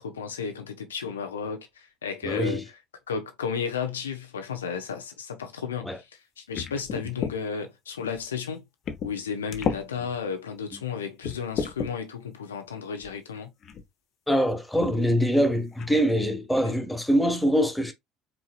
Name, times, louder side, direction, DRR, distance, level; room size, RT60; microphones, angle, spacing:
voice 1, 0.0-2.6 3.1-6.1 6.4-8.6 9.0-13.5, left 6 dB, 85° left, 0.8 m, -33 dB
voice 2, 2.2-2.6 5.8-6.0 14.3-17.9, equal, 5° left, 1.4 m, -24 dB
sound 1, 6.5-7.4 8.1-8.2 8.8-9.2 9.5-9.8 10.5-10.6 11.2-11.9 13.0-13.1 13.6-13.9 14.8-15.0 15.3-15.4 15.8-16.1, left 6 dB, 50° left, 0.8 m, -32 dB
4.5 x 3.8 x 2.4 m
hypercardioid pair, 60°, 0 cm